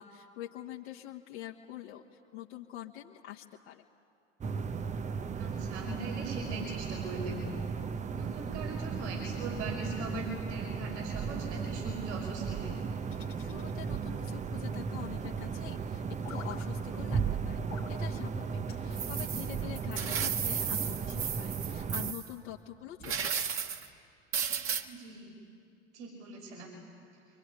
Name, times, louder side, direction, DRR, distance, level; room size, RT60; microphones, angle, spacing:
voice 1, 0.0-2.0 2.3-3.8 13.4-17.6 17.9-18.5 18.8-23.5, left 12 dB, 60° left, -1 dB, 1.6 m, -45 dB
sound 1, 4.4-22.1, right 6 dB, 20° right, 0.9 m, -36 dB
voice 2, 5.3-7.6 8.1-12.7 18.8-19.0 24.8-25.4 25.9-26.7, right 2 dB, 65° right, 0 dB, 5.6 m, -41 dB
sound 2, 13.1-14.3 16.2-16.7 17.7-18.0 18.7-18.9 19.9-20.8, left 8 dB, 80° left, 2.7 m, -50 dB
sound 3, 18.9-22.3 23.0-23.9 24.3-24.8, right 7 dB, 35° right, 1.8 m, -34 dB
24.5 x 24.5 x 9.9 m, 2.4 s
figure-of-eight pair, 80°, 36 cm